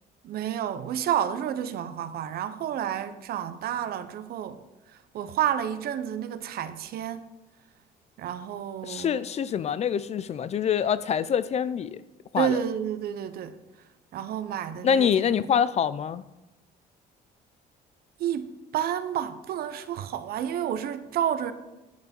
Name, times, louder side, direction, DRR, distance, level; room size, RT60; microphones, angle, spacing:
voice 1, 0.2-4.6 5.1-7.3 8.2-9.3 12.4-13.6 14.1-15.1 18.2-21.5, right 10 dB, 65° right, 0.8 m, -30 dB
voice 2, 8.8-12.0 12.3-12.6 14.8-16.2, left 8 dB, 40° left, 0.4 m, -25 dB
10.5 x 7.9 x 4.4 m
cardioid pair, 110°, 17 cm